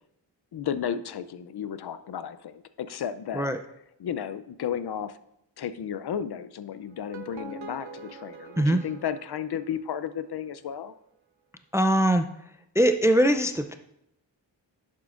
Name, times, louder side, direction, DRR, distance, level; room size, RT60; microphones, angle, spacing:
voice 1, 0.5-3.5 4.0-5.2 5.6-11.0, left 8 dB, 60° left, 13 dB, 0.6 m, -33 dB
sound 1, 6.9-10.1, right 3 dB, 90° right, 0.9 m, -44 dB
voice 2, 11.7-12.3 12.7-13.8, right 1 dB, 5° right, 8 dB, 0.4 m, -21 dB
11.0 x 7.5 x 2.5 m, 0.79 s
wide cardioid pair, 85°, 44 cm